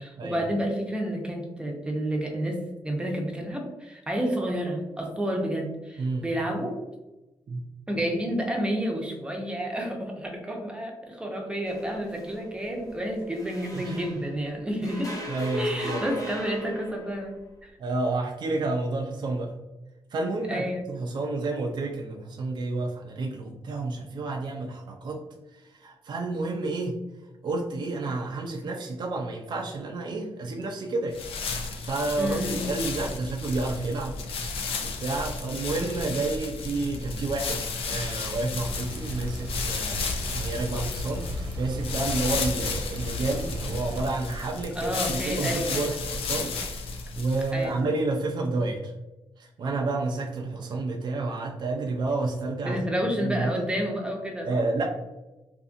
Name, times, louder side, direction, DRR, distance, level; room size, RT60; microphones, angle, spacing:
voice 1, 0.0-6.8 7.9-15.1 15.5-17.3 17.6-17.7 20.5-20.9 32.2-32.6 44.8-45.9 47.5-47.9 52.6-54.6, equal, 10° right, 1 dB, 0.6 m, -30 dB
voice 2, 6.0-6.3 7.5-7.6 13.7-14.0 15.3-16.0 17.8-19.5 20.1-25.2 25.5-27.0 27.4-31.2 31.5-34.2 34.6-37.6 37.9-46.9 47.2-48.9 49.4-52.8 53.2-53.6 54.5-54.8, right 3 dB, 55° right, 0 dB, 0.4 m, -30 dB
sound 1, 11.7-14.4 14.8-17.3, left 1 dB, 40° left, 0.7 m, -39 dB
sound 2, 31.1-47.6, left 4 dB, 85° left, 0.4 m, -33 dB
sound 3, 38.6-44.0, left 1 dB, 80° right, 0.9 m, -35 dB
2.6 x 2.5 x 2.4 m, 1.0 s
cardioid pair, 90°, 9 cm